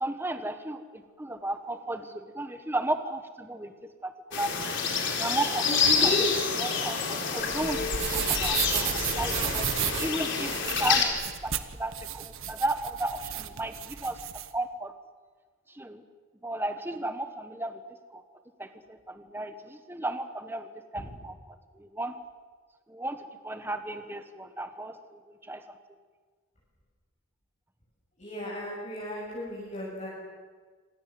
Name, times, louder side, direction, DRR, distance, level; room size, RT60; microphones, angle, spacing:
voice 1, 0.0-3.7 4.0-5.7 6.0-6.2 6.5-11.2 11.4-14.2 14.5-14.9 15.7-16.0 16.4-17.8 18.1-18.2 18.6-22.1 22.9-23.2 23.4-25.2 25.5-25.8, right 1 dB, 10° right, 8 dB, 1.3 m, -34 dB
sound 1, 4.3-11.0, left 5 dB, 55° left, 4.3 m, -28 dB
voice 2, 5.7-6.2 20.9-21.1 28.2-30.1, left 1 dB, 35° left, -7 dB, 7.6 m, -34 dB
sound 2, 7.4-14.5, right 9 dB, 65° right, 1.4 m, -33 dB
26.5 x 26.5 x 7.8 m, 1.5 s
head